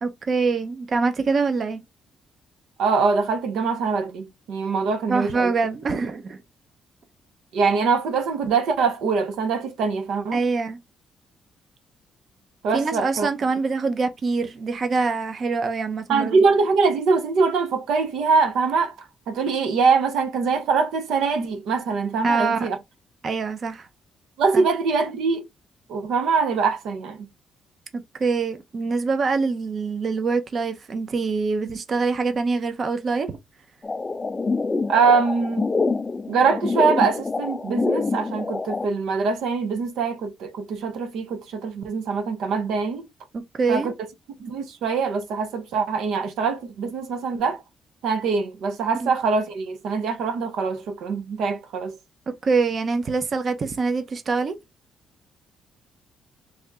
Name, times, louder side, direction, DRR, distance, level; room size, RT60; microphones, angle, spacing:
voice 1, 0.0-1.8 5.1-6.4 10.3-10.8 12.7-16.4 22.2-22.7 23.2-23.9 24.5-24.6 27.9-33.4 43.3-43.9 49.0-49.1 52.4-54.5, right 4 dB, 45° right, 0.7 m, -24 dB
voice 2, 2.8-5.5 7.5-10.4 12.6-13.3 16.1-22.8 24.4-25.4 25.9-27.3 34.9-35.6 36.3-43.0 43.7-43.9 44.4-47.6 48.0-51.9, right 5 dB, 80° right, 0.7 m, -23 dB
sound 1, 33.8-38.9, left 3 dB, 25° left, 0.3 m, -26 dB
3.4 x 2.8 x 3.5 m
cardioid pair, 90°, 0 cm